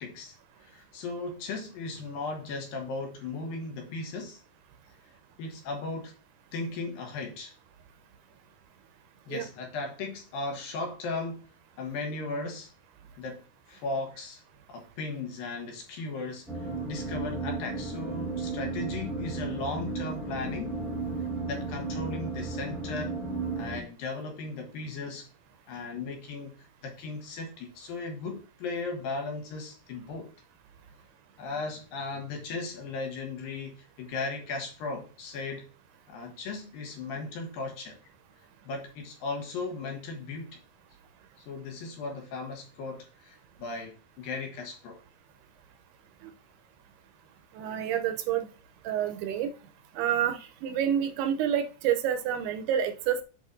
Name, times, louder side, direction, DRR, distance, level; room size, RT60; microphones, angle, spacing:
voice 1, 0.0-4.4 5.4-6.1 6.5-7.5 9.3-11.5 11.8-12.7 13.2-14.4 14.7-20.8 21.4-23.2 23.6-25.3 25.7-26.6 26.8-30.3 31.4-35.7 36.1-38.0 38.6-40.6 41.5-45.0, left 3 dB, 65° left, 2.7 m, -37 dB
sound 1, 16.5-23.8, right 3 dB, ahead, 0.4 m, -34 dB
voice 2, 47.5-48.5 48.8-49.5 50.0-53.2, right 9 dB, 80° right, 2.6 m, -28 dB
8.3 x 5.7 x 2.6 m
omnidirectional pair, 4.8 m